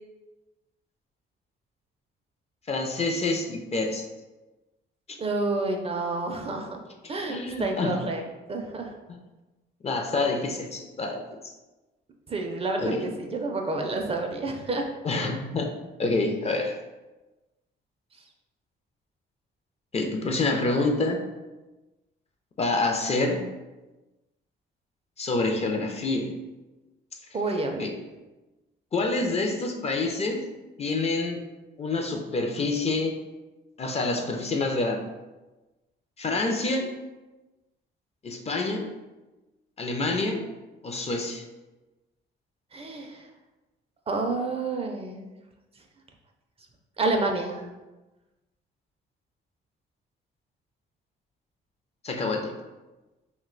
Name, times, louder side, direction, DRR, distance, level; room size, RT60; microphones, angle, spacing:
voice 1, 2.7-4.0 7.3-8.1 9.8-11.2 12.8-13.0 15.0-15.7 16.0-16.8 19.9-21.2 22.6-23.4 25.2-26.4 27.8-27.9 28.9-30.4 30.8-31.4 31.8-33.2 33.8-35.0 36.2-36.9 38.2-38.9 39.8-40.5 40.8-41.4 52.0-52.6, left 3 dB, 30° left, 3 dB, 0.4 m, -27 dB
voice 2, 5.2-6.8 7.1-8.2 8.5-8.9 12.3-14.8 27.3-27.8 42.7-43.2 44.1-45.3 47.0-47.6, right 3 dB, 30° right, 2 dB, 0.4 m, -29 dB
2.6 x 2.2 x 3.8 m, 1.1 s
cardioid pair, 90°, 20 cm